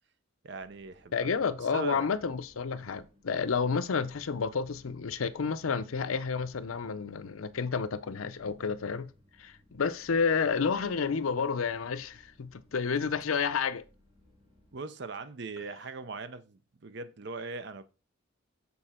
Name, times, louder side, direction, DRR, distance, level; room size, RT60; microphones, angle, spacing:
voice 1, 0.4-1.3 1.7-2.0 14.7-17.8, right 4 dB, 55° right, 0.6 m, -40 dB
sound 1, 0.6-14.8, left 1 dB, 30° right, 2.4 m, -63 dB
voice 2, 1.1-9.1 9.4-13.8, left 5 dB, 90° left, 0.6 m, -30 dB
7.0 x 4.2 x 4.3 m
head